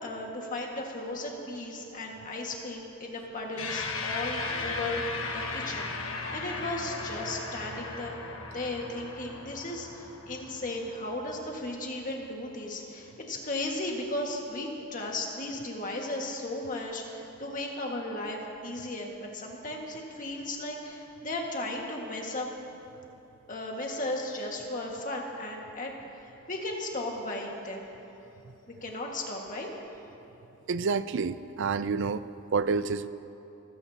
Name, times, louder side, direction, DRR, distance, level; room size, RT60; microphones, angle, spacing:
voice 1, 0.0-5.0 5.3-8.2 8.5-22.5 23.5-25.9 26.2-27.9 28.8-29.7, left 2 dB, 40° left, 0 dB, 1.8 m, -35 dB
sound 1, 3.6-12.2, left 3 dB, 70° left, 1.4 m, -37 dB
voice 2, 30.7-32.3 32.5-33.1, right 4 dB, 60° right, 14 dB, 0.5 m, -28 dB
26.0 x 15.5 x 2.9 m, 2.9 s
head